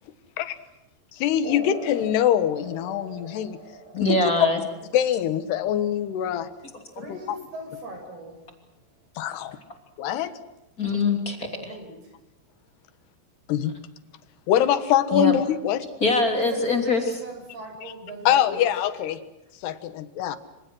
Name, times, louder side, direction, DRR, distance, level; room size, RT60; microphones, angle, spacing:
voice 1, 1.2-3.6 3.9-4.2 4.9-6.5 9.2-9.6 10.0-10.3 13.5-13.7 14.5-15.9 18.3-19.2 19.6-20.4, left 10 dB, 70° left, 12 dB, 3.3 m, -23 dB
sound 1, 1.4-8.5, right 2 dB, 10° right, 4.7 m, -44 dB
voice 2, 4.0-4.6 10.8-11.5 15.1-15.3 16.0-17.0, left 2 dB, 20° left, 4 dB, 2.9 m, -22 dB
voice 3, 6.9-8.4 11.5-12.1 16.3-18.6, right 2 dB, 60° right, 4 dB, 8.9 m, -39 dB
28.0 x 26.5 x 6.3 m, 0.96 s
omnidirectional pair, 5.3 m